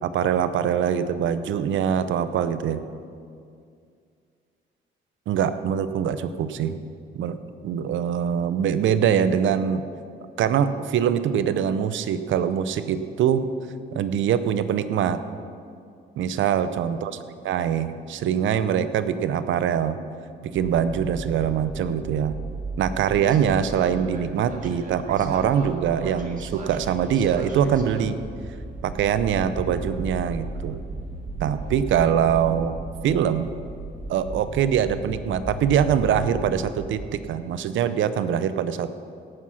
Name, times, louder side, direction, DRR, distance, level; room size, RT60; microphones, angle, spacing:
voice 1, 0.0-2.8 5.3-6.7 7.1-7.4 7.6-9.8 10.4-13.4 13.9-15.2 16.2-17.1 17.4-20.0 20.4-22.3 22.8-28.2 28.8-30.8 31.4-32.8 33.0-33.5 34.1-38.9, right 8 dB, 75° right, 12 dB, 0.7 m, -23 dB
sound 1, 20.6-37.1, right 2 dB, 40° right, 1.9 m, -35 dB
17.5 x 6.2 x 5.8 m, 2.3 s
cardioid pair, 90°, 20 cm